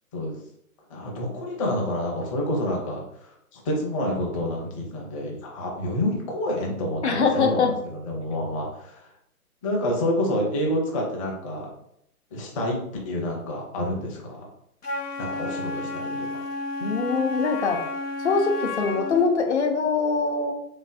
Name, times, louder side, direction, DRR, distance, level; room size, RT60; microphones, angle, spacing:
voice 1, 0.9-9.1 9.6-11.7 12.3-12.8 13.0-14.5 15.2-16.3, left 1 dB, 20° left, -1 dB, 0.8 m, -28 dB
voice 2, 7.0-7.7 16.8-17.8 18.2-20.5, left 4 dB, 50° left, 3 dB, 1.0 m, -23 dB
Wind instrument woodwind instrument, 14.8-19.3, left 2 dB, 85° left, 0.9 m, -32 dB
3.5 x 3.1 x 3.9 m, 0.74 s
figure-of-eight pair, 135°, 45 cm